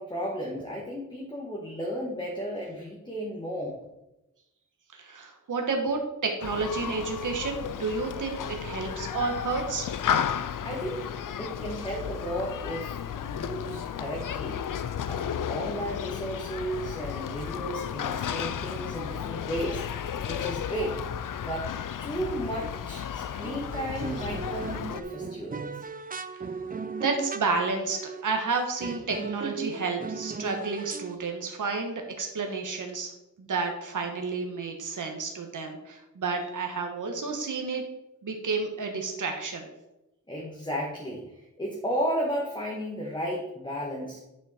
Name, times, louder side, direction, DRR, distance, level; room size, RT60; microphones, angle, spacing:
voice 1, 0.0-3.8 10.6-11.1 11.4-14.6 15.0-19.8 20.2-21.0 21.4-21.7 22.0-25.8 40.3-44.2, equal, 15° left, -3 dB, 1.6 m, -34 dB
voice 2, 4.9-9.9 27.0-33.1 33.4-37.8 38.2-39.7, right 4 dB, 75° right, 3 dB, 1.4 m, -31 dB
Human group actions, 6.4-25.0, left 8 dB, 80° left, 0.5 m, -33 dB
sound 1, 22.6-23.0 23.4-27.6 27.9-28.2 28.5-31.2, right 4 dB, 30° right, 0.5 m, -37 dB
10.0 x 6.1 x 4.3 m, 0.94 s
wide cardioid pair, 120°, 31 cm